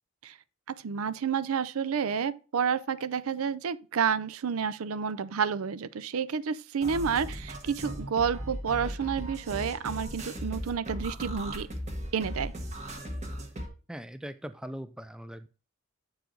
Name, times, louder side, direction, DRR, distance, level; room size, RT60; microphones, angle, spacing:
voice 1, 0.8-11.7 12.1-12.5, right 6 dB, 85° right, 0.5 m, -30 dB
sound 1, 6.8-13.7, equal, 35° right, 1.3 m, -37 dB
voice 2, 13.9-15.5, equal, 5° right, 0.3 m, -40 dB
7.8 x 4.8 x 3.8 m
head